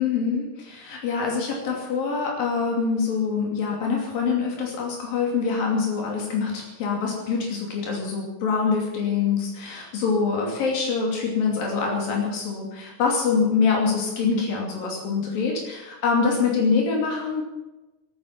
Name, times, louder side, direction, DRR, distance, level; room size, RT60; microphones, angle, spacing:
voice 1, 0.0-17.4, left 5 dB, 90° left, -1 dB, 4.5 m, -25 dB
18.5 x 9.5 x 7.6 m, 1.1 s
omnidirectional pair, 3.9 m